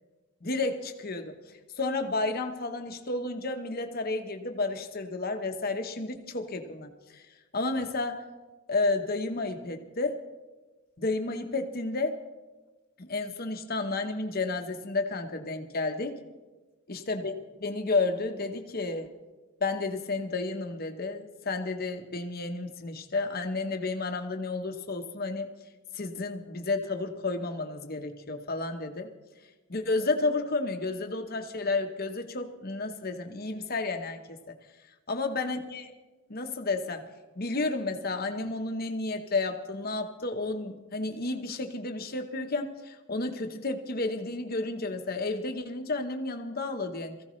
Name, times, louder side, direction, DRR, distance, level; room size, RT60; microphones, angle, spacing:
voice 1, 0.4-1.3 1.8-7.2 7.5-8.2 8.7-10.2 11.0-12.2 13.0-16.1 16.9-19.1 19.6-25.5 25.9-29.1 29.7-34.2 35.1-35.9 36.3-37.0 37.4-47.1, left 3 dB, 45° left, 6 dB, 1.1 m, -31 dB
22.0 x 15.0 x 3.2 m, 1.2 s
head